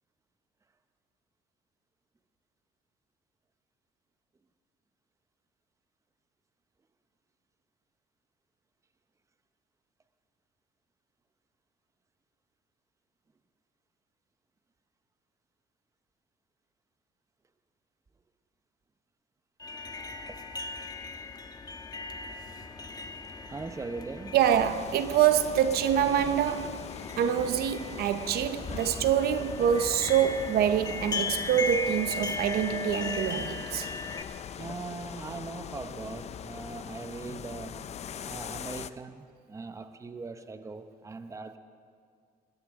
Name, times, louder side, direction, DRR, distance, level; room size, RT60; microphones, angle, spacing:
sound 1, 19.6-34.2, left 3 dB, 25° left, 1.2 m, -38 dB
voice 1, 23.5-24.4 34.6-37.9 38.2-41.6, right 3 dB, 20° right, 0.8 m, -40 dB
voice 2, 24.3-26.9 27.2-33.9, right 9 dB, 70° right, 0.8 m, -26 dB
sound 2, 24.4-38.9, left 8 dB, 40° left, 0.5 m, -42 dB
21.5 x 16.0 x 3.6 m
cardioid pair, 110°, 17 cm